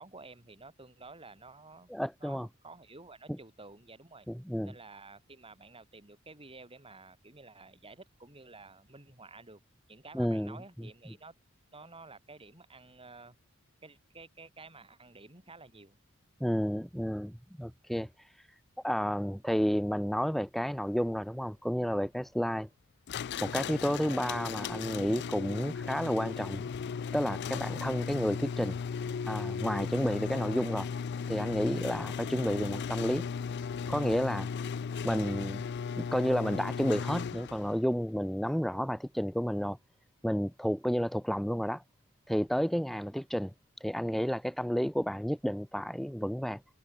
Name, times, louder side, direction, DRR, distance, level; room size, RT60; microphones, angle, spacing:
voice 1, 0.0-1.9 2.2-4.3 4.6-9.6 9.9-11.3 11.7-13.4 13.8-16.0, right 3 dB, 25° right, 7.6 m, -51 dB
voice 2, 1.9-2.5 4.3-4.7 10.1-10.6 16.4-18.5 18.8-22.7 23.4-26.6 27.1-28.8 29.3-30.9 31.3-33.3 33.9-34.5 35.0-35.6 36.0-39.8 40.2-41.8 42.3-43.5 43.8-46.6, equal, ahead, 1.1 m, -31 dB
sound 1, 23.1-37.8, left 6 dB, 55° left, 0.4 m, -36 dB
head